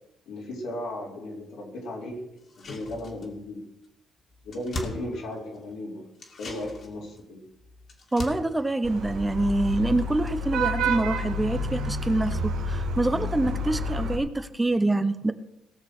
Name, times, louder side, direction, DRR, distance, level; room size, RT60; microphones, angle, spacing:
voice 1, 0.3-2.2 2.6-3.6 4.4-6.0 6.4-7.4, left 1 dB, 85° left, -2 dB, 4.0 m, -35 dB
sound 1, 2.4-3.5 3.8-3.9 4.2-5.7 6.1-9.9 10.2-10.3, left 1 dB, 50° left, 2.4 m, -41 dB
voice 2, 8.1-15.3, right 2 dB, 15° right, 11 dB, 0.8 m, -26 dB
Vehicle horn car horn honking / Traffic noise roadway noise, 8.8-14.2, equal, 80° right, 1.5 m, -29 dB
18.5 x 6.6 x 6.1 m, 0.83 s
cardioid pair, 90°, 0 cm